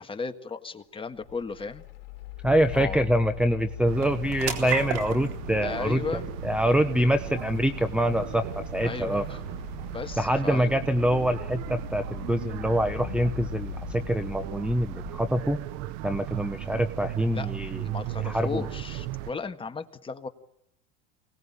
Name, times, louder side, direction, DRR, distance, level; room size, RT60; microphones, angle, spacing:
voice 1, 0.0-1.8 2.7-3.0 5.6-6.3 8.8-9.4 9.9-10.7 17.3-17.5 17.8-20.3, left 4 dB, 20° left, 7 dB, 1.7 m, -35 dB
sound 1, 1.2-15.9, left 8 dB, 80° left, 1.6 m, -41 dB
sound 2, 1.3-15.9, right 9 dB, 80° right, 3.9 m, -42 dB
voice 2, 2.4-6.0 6.4-9.2 10.2-15.6 16.0-17.9 18.2-18.6, equal, 5° right, 10 dB, 1.0 m, -25 dB
sound 3, 3.9-19.3, right 13 dB, 65° right, 0.9 m, -37 dB
24.0 x 19.0 x 9.9 m, 0.83 s
supercardioid pair, 100°, 29 cm